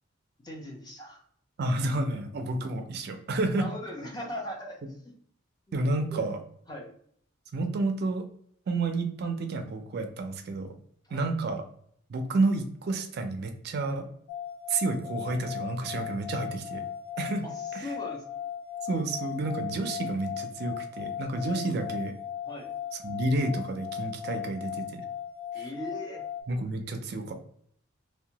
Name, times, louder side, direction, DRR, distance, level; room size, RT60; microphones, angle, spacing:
voice 1, 0.4-1.2 3.6-5.1 5.7-5.8 6.1-6.2 6.7-6.9 11.0-11.3 17.4-18.2 22.4-22.7 25.5-26.2, left 1 dB, 20° left, -1 dB, 0.5 m, -39 dB
voice 2, 1.6-3.6 5.7-6.4 7.5-8.3 8.7-10.7 11.1-11.6 12.1-14.1 14.7-16.8 17.2-17.4 17.7-17.9 18.9-22.1 23.0-25.0 26.5-27.3, right 2 dB, 55° right, 6 dB, 0.4 m, -30 dB
sound 1, 14.3-26.4, left 9 dB, 75° left, 0.3 m, -37 dB
2.7 x 2.1 x 2.8 m, 0.64 s
head